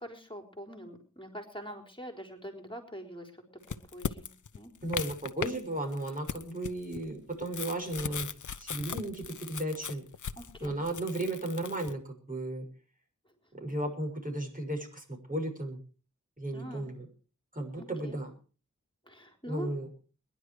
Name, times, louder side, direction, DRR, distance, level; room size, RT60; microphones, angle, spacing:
voice 1, 0.0-3.3 3.9-4.3 4.5-4.7 10.4-10.8 16.5-16.9 17.8-18.2 19.1-19.7, equal, 15° left, 4 dB, 4.1 m, -44 dB
sound 1, 3.6-5.6 5.9-11.9, left 7 dB, 75° left, 0.9 m, -38 dB
voice 2, 4.8-8.3 8.6-10.0 10.6-12.7 13.5-15.8 16.4-17.0 17.5-18.3 19.5-19.9, right 1 dB, 25° right, 1 dB, 6.7 m, -35 dB
21.5 x 11.0 x 4.9 m, 0.38 s
cardioid pair, 50°, 30 cm